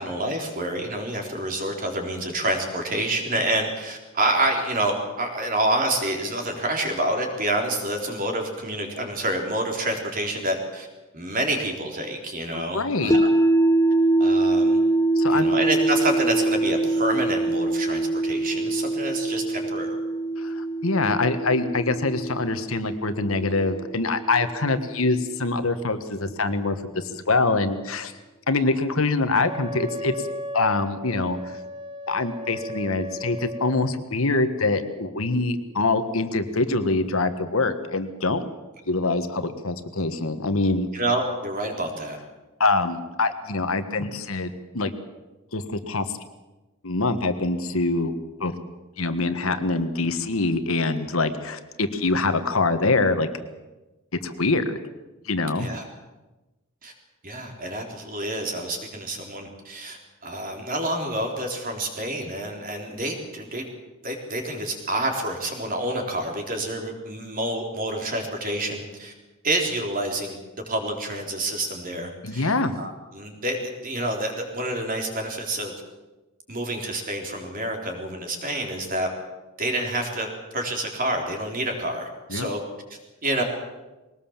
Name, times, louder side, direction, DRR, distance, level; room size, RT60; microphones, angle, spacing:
voice 1, 0.0-10.9 11.1-13.3 14.2-14.8 15.3-20.0 40.9-42.2 55.6-55.8 56.8-56.9 57.2-63.7 64.0-69.1 69.4-70.4 70.7-75.7 76.5-79.1 79.6-82.6 83.2-83.4, right 1 dB, 40° right, 3 dB, 4.0 m, -28 dB
voice 2, 12.5-13.1 15.1-15.5 20.4-28.1 28.5-30.1 30.5-31.5 32.1-38.4 38.9-40.9 42.6-44.9 45.5-46.0 46.8-48.1 48.4-48.5 49.0-53.3 54.2-54.8 55.2-55.7 72.2-72.7 82.3-82.5, left 3 dB, 70° left, 9 dB, 1.5 m, -24 dB
sound 1, 13.1-25.2, right 2 dB, 15° left, 0.9 m, -24 dB
Wind instrument woodwind instrument, 29.4-33.9, equal, 20° right, 1.1 m, -35 dB
21.5 x 19.0 x 7.4 m, 1.1 s
head